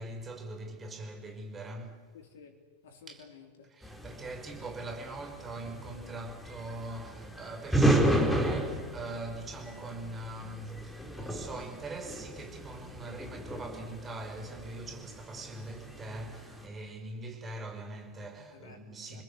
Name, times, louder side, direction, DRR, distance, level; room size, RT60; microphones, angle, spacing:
voice 1, 0.0-2.1 3.1-3.2 3.7-19.2, right 2 dB, 20° right, 5.7 m, -42 dB
voice 2, 2.1-3.7 18.5-18.8 19.1-19.2, left 6 dB, 60° left, 3.8 m, -53 dB
sound 1, 3.8-16.7, right 1 dB, ahead, 4.4 m, -33 dB
29.0 x 20.0 x 8.3 m
figure-of-eight pair, 90°, 0 cm